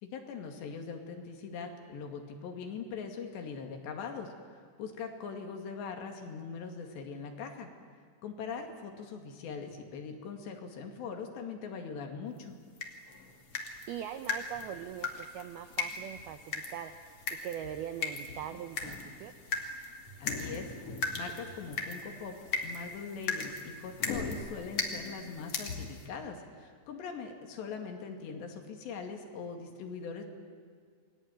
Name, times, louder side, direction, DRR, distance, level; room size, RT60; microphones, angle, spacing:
voice 1, 0.0-7.7 8.2-12.6 20.2-20.7 21.1-22.4 22.6-30.2, left 5 dB, 65° left, 4 dB, 4.3 m, -41 dB
sound 1, 12.8-26.1, left 4 dB, 40° left, 2.5 m, -38 dB
voice 2, 13.5-17.0 17.4-19.3, right 10 dB, 90° right, 9 dB, 2.1 m, -41 dB
29.0 x 21.5 x 9.3 m, 2.1 s
omnidirectional pair, 5.7 m